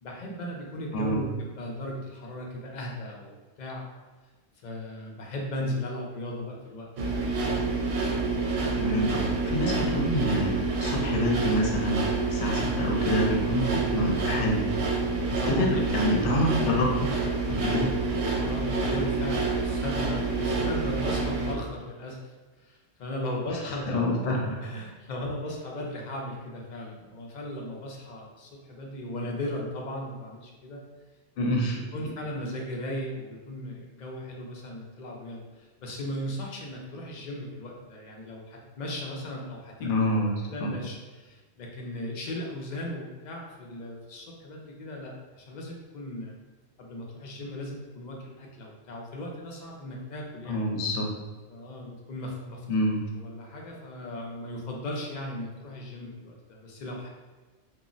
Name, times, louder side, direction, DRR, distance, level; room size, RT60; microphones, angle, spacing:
voice 1, 0.0-3.9 4.6-7.2 14.9-15.7 18.3-22.2 22.6-24.0 24.6-30.8 31.9-39.9 40.2-46.3 46.8-50.6 51.5-52.6 53.1-57.1, left 1 dB, 55° left, -1 dB, 0.5 m, -37 dB
sound 1, 7.0-21.5, right 3 dB, 75° right, 0.8 m, -28 dB
voice 2, 8.8-12.1 12.3-14.7 15.3-17.1 17.5-17.9 23.7-24.6 31.4-31.8 39.8-40.7 50.5-51.1 52.7-53.0, left 1 dB, 75° left, -1 dB, 0.8 m, -27 dB
2.2 x 2.0 x 3.7 m, 1.3 s
omnidirectional pair, 1.1 m